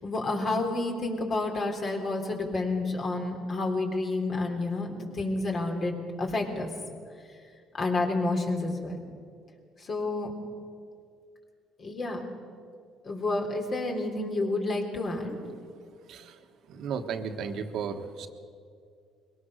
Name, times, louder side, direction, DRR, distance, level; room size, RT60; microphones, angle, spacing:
voice 1, 0.0-5.9 6.2-6.7 7.7-9.0 9.8-10.3 11.8-12.2 13.0-15.4, left 2 dB, 45° left, 2 dB, 3.5 m, -29 dB
voice 2, 16.7-18.3, right 6 dB, 70° right, 7 dB, 1.4 m, -34 dB
21.5 x 18.0 x 6.6 m, 2.2 s
supercardioid pair, 85°, 0 cm